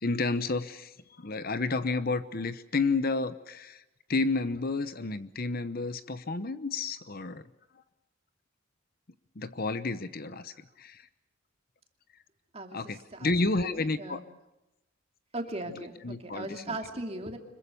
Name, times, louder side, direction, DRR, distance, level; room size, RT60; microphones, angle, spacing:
voice 1, 0.0-3.8 4.1-7.4 9.4-11.1 12.7-14.2 15.6-16.8, left 3 dB, 45° left, 13 dB, 0.9 m, -31 dB
voice 2, 13.2-14.2 15.3-17.4, right 2 dB, 30° right, 3 dB, 2.7 m, -38 dB
26.0 x 22.5 x 6.9 m, 0.96 s
head